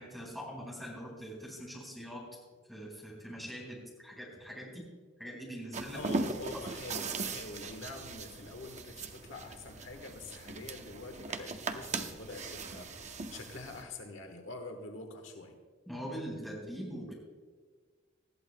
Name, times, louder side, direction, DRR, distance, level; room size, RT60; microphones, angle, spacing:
voice 1, 0.0-2.2 2.6-4.8 5.2-6.0 15.9-17.1, equal, ahead, -3 dB, 4.6 m, -43 dB
sound 1, 5.7-13.8, right 3 dB, 40° right, 0.8 m, -39 dB
voice 2, 5.9-12.9 13.3-15.6, left 2 dB, 80° left, 4 dB, 1.3 m, -45 dB
19.5 x 14.0 x 2.2 m, 1.5 s
head